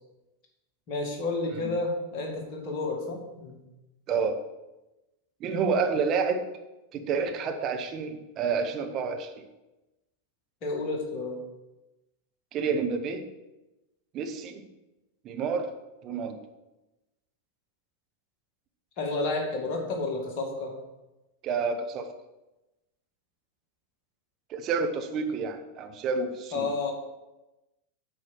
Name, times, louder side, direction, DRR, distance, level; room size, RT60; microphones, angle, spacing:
voice 1, 0.9-3.6 10.6-11.4 19.0-20.8 26.5-26.9, left 3 dB, 40° left, 1 dB, 2.1 m, -31 dB
voice 2, 4.1-4.4 5.4-6.4 6.9-9.4 12.5-13.2 14.1-14.6 15.2-15.7 16.0-16.3 21.4-22.1 24.5-26.7, right 5 dB, 35° right, 5 dB, 1.1 m, -29 dB
8.4 x 4.8 x 6.3 m, 1.0 s
figure-of-eight pair, 90°, 0 cm